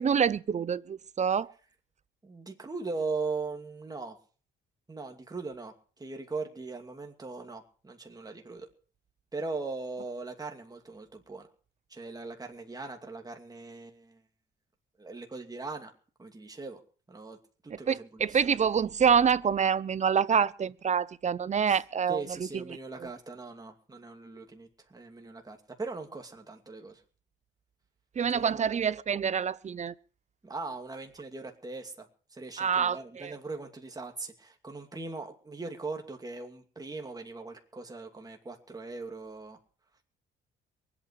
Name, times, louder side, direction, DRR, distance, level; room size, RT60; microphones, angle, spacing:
voice 1, 0.0-1.5 17.7-23.1 28.2-29.9 32.6-33.3, right 7 dB, 35° right, 0.7 m, -27 dB
voice 2, 2.2-4.2 4.9-8.7 9.3-11.5 11.9-14.2 15.0-15.9 16.2-16.8 17.1-17.4 17.6-18.4 21.7-21.8 22.1-27.0 28.3-28.6 30.4-39.6, right 3 dB, 20° right, 2.6 m, -40 dB
23.5 x 8.9 x 4.8 m
cardioid pair, 90°, 20 cm